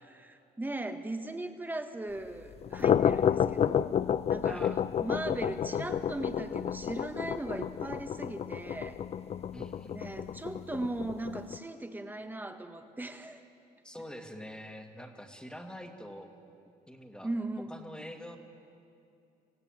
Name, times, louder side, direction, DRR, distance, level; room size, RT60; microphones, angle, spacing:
voice 1, 0.1-9.0 9.9-13.4 17.2-17.7, right 2 dB, 10° right, 7 dB, 1.6 m, -38 dB
sound 1, 2.5-11.6, left 8 dB, 40° left, 0.5 m, -30 dB
voice 2, 4.4-4.8 9.5-10.0 13.8-16.3 16.9-17.3 17.7-18.4, equal, 5° left, 4 dB, 2.2 m, -45 dB
27.5 x 16.0 x 9.0 m, 2.6 s
cardioid pair, 110°, 17 cm